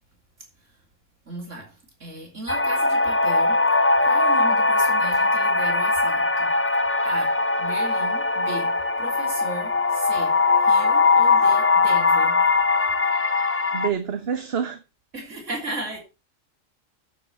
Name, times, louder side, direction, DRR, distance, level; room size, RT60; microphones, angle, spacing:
voice 1, 1.3-1.7 2.0-3.6 4.0-6.5 7.0-12.4 15.1-16.0, right 2 dB, 70° right, 3.6 m, -36 dB
sound 1, 2.5-13.9, left 3 dB, 15° left, 0.6 m, -20 dB
voice 2, 13.7-14.8, right 7 dB, 55° right, 1.3 m, -27 dB
9.1 x 7.6 x 6.8 m
omnidirectional pair, 1.3 m